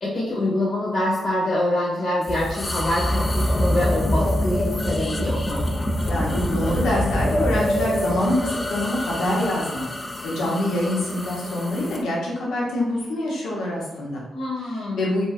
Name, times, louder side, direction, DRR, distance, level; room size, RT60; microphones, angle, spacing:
voice 1, 0.0-5.7 10.4-10.5 14.3-15.2, left 1 dB, 55° left, -5 dB, 0.9 m, -25 dB
sound 1, 2.2-12.0, left 1 dB, 25° left, 0.3 m, -25 dB
voice 2, 6.1-9.9 10.2-14.2 14.9-15.2, left 1 dB, 85° left, -4 dB, 0.8 m, -25 dB
2.5 x 2.1 x 2.4 m, 1.0 s
supercardioid pair, 60°, 0 cm